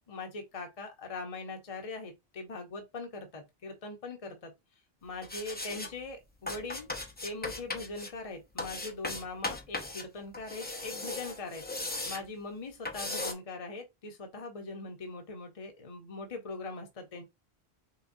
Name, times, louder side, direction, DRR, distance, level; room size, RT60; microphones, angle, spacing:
voice 1, 0.1-4.5 5.0-6.9 7.2-11.6 12.1-17.2, left 3 dB, 35° left, 0.9 m, -41 dB
sound 1, 5.2-5.9 6.5-8.1 8.6-10.0 10.3-12.2 12.9-13.3, left 2 dB, 10° left, 0.5 m, -37 dB
5.7 x 2.3 x 2.6 m
omnidirectional pair, 1.1 m